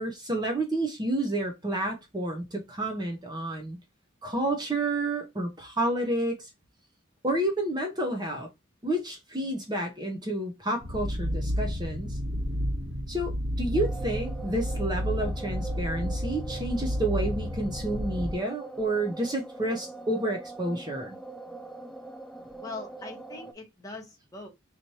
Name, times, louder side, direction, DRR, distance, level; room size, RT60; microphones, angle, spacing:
voice 1, 0.0-3.8 4.2-6.5 7.2-8.5 8.8-12.2 13.1-21.2, right 1 dB, 20° right, 0.7 m, -30 dB
sound 1, 10.8-18.3, equal, 70° right, 1.4 m, -31 dB
sound 2, 13.7-23.5, right 3 dB, ahead, 0.3 m, -43 dB
voice 2, 22.6-24.5, left 3 dB, 15° left, 1.1 m, -41 dB
4.1 x 3.1 x 2.8 m
head